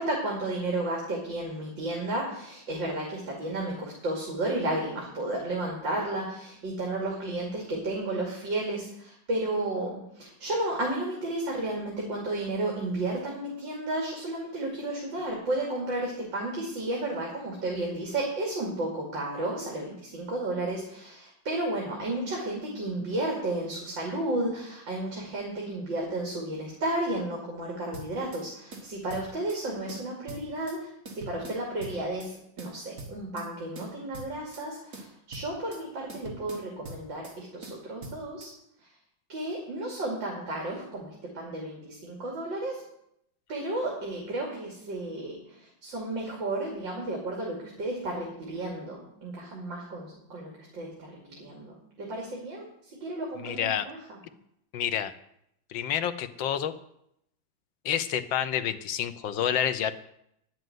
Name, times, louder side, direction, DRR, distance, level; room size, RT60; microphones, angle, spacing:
voice 1, 0.0-38.5 39.3-42.8 43.5-54.2, right 1 dB, 65° right, -1 dB, 3.3 m, -33 dB
sound 1, 27.9-28.4 28.7-29.6 29.9-30.8 31.1-32.3 32.6-33.5 33.8-34.7 34.9-35.8 36.1-37.4 37.6-38.5, right 2 dB, 45° right, 2.1 m, -43 dB
voice 2, 53.4-53.9 54.7-55.1 55.7-56.7 57.8-59.9, left 9 dB, 70° left, 9 dB, 1.6 m, -28 dB
10.5 x 7.8 x 9.4 m, 0.77 s
omnidirectional pair, 2.2 m